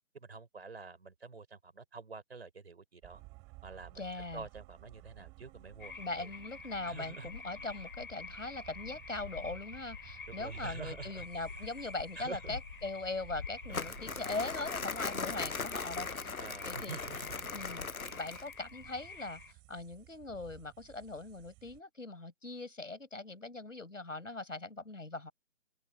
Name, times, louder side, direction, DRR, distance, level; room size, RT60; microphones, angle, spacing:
voice 1, 0.1-3.2 3.6-4.1 4.3-6.3 6.9-7.3 7.6-7.7 10.3-11.3 12.2-12.6 13.7-13.9 15.1-15.4 16.4-17.5 18.1-18.2, right 4 dB, 45° right, 5.7 m, -47 dB
sound 1, 3.0-21.8, right 26 dB, 10° right, 6.6 m, -56 dB
voice 2, 3.9-4.5 6.0-16.3 16.6-17.0 17.5-17.9 18.2-25.3, left 3 dB, 65° left, 6.7 m, -41 dB
sound 2, 5.8-19.5, left 4 dB, 40° left, 3.7 m, -48 dB
Crumpling crinkling, 13.7-18.6, left 5 dB, 85° left, 0.9 m, -39 dB
open air
figure-of-eight pair, 155°, 41 cm